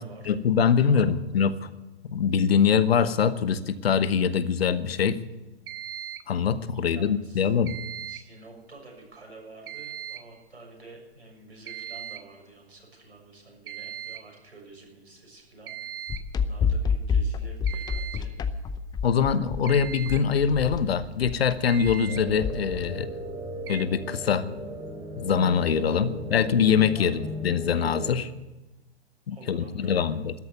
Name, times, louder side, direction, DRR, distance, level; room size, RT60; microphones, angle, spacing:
voice 1, 0.3-1.7 2.1-5.2 6.3-7.8 19.0-23.1 23.7-24.5 25.2-28.3 29.3-30.3, left 7 dB, 70° left, 14 dB, 1.1 m, -23 dB
sound 1, 5.7-6.4 7.6-8.4 9.7-10.4 11.7-12.3 13.7-14.3 15.7-16.3 17.7-18.3 19.7-20.3 21.3-21.4 21.7-22.2 23.7-23.8, right 11 dB, 60° right, 1.4 m, -39 dB
voice 2, 6.7-7.5 8.1-15.9 16.4-18.3 25.8-26.0 26.9-27.1 29.3-30.2, right 3 dB, 85° right, 0 dB, 6.7 m, -49 dB
sound 2, 16.1-22.9, left 5 dB, 15° left, 0.6 m, -29 dB
sound 3, 22.1-28.1, left 1 dB, 5° right, 5.3 m, -36 dB
13.0 x 11.0 x 9.4 m, 1.1 s
figure-of-eight pair, 115°, 32 cm